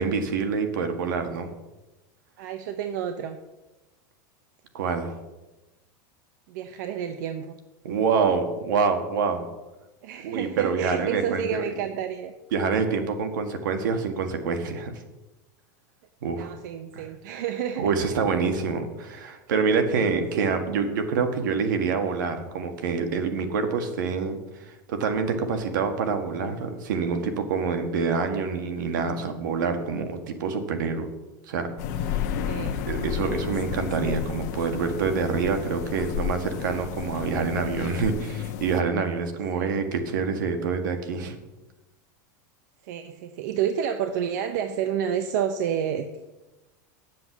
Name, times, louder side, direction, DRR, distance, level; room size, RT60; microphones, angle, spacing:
voice 1, 0.0-1.5 4.7-5.1 7.8-9.5 10.2-11.6 12.5-14.9 16.2-16.5 17.0-17.1 17.8-24.4 24.7-31.1 31.5-31.7 32.0-32.2 32.7-41.4, right 5 dB, 85° right, 6 dB, 1.8 m, -26 dB
voice 2, 2.4-3.4 6.5-7.6 10.0-12.3 16.4-17.9 20.3-20.6 32.5-32.8 39.5-39.8 42.8-46.3, right 8 dB, 70° right, 8 dB, 0.8 m, -30 dB
sound 1, 31.8-38.8, left 8 dB, 60° left, 1.0 m, -32 dB
9.7 x 7.6 x 7.2 m, 1.1 s
supercardioid pair, 155°, 10 cm